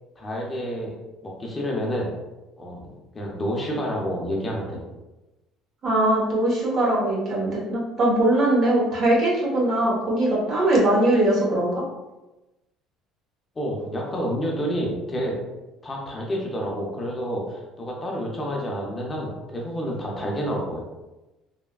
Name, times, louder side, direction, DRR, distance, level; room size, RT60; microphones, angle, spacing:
voice 1, 0.2-0.9 1.2-2.1 2.6-4.9 13.6-15.4 15.8-20.9, equal, 20° left, -2 dB, 0.5 m, -29 dB
voice 2, 5.8-11.8, right 1 dB, 45° right, -4 dB, 0.9 m, -21 dB
3.2 x 2.1 x 2.3 m, 1.0 s
cardioid pair, 120°, 0 cm